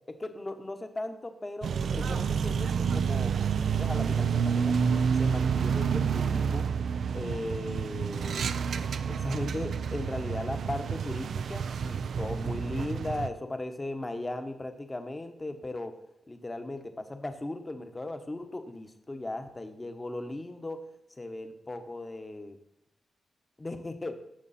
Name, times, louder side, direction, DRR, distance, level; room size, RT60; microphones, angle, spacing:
voice 1, 0.1-3.3 3.8-4.8 5.2-6.7 7.1-8.5 9.1-15.9 16.3-20.8 21.2-22.6 23.6-24.2, left 2 dB, 20° left, 7 dB, 1.2 m, -37 dB
sound 1, 1.6-13.3, right 6 dB, 70° right, 0.6 m, -29 dB
18.0 x 6.8 x 4.3 m, 0.78 s
wide cardioid pair, 135°, 0 cm